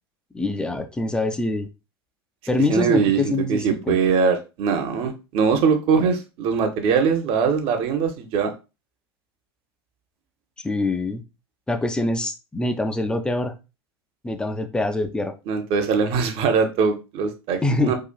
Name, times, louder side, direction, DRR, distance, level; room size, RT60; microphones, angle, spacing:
voice 1, 0.3-1.7 2.5-4.0 6.0-6.1 10.6-11.2 11.7-13.5 14.2-15.3 17.6-17.9, left 2 dB, 5° left, 7 dB, 0.4 m, -24 dB
voice 2, 2.7-8.5 15.5-18.0, right 6 dB, 45° right, 6 dB, 0.8 m, -21 dB
4.9 x 2.4 x 2.2 m, 0.29 s
figure-of-eight pair, 85°, 14 cm